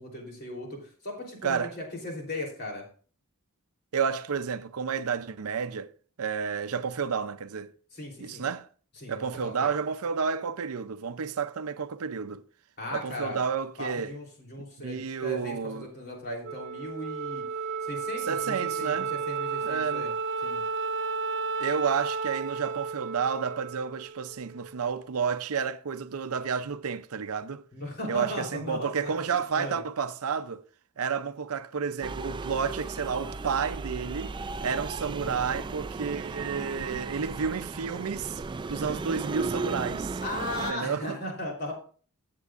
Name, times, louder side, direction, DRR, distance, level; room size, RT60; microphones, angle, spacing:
voice 1, 0.0-2.8 7.9-8.4 9.0-9.7 12.8-13.4 13.8-17.4 17.8-20.1 20.4-20.6 27.7-29.8 38.8-39.0 40.2-41.7, left 1 dB, 45° left, 3.4 m, -37 dB
voice 2, 1.4-1.7 3.9-5.9 6.2-7.7 8.2-8.7 9.1-12.4 12.9-14.2 14.8-15.9 18.3-19.1 19.6-20.1 21.6-27.6 28.1-30.6 31.0-34.4 34.6-38.4 38.7-40.2 40.7-41.2, right 6 dB, 75° right, 0.6 m, -31 dB
Wind instrument woodwind instrument, 16.4-25.0, right 5 dB, 55° right, 1.2 m, -33 dB
sound 1, 32.0-40.7, right 3 dB, 20° right, 0.3 m, -35 dB
15.0 x 7.5 x 2.5 m
head